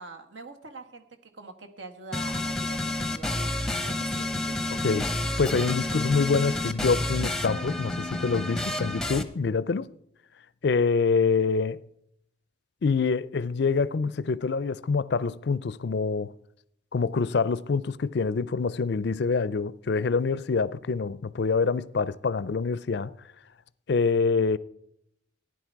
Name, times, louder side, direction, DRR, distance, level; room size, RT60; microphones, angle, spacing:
voice 1, 0.0-4.4, right 3 dB, 70° right, 1.6 m, -44 dB
sound 1, 2.1-9.2, left 2 dB, 5° left, 0.8 m, -30 dB
voice 2, 5.4-9.9 10.6-11.8 12.8-16.3 16.9-23.1 23.9-24.6, left 4 dB, 55° left, 0.4 m, -26 dB
15.5 x 10.5 x 4.7 m
head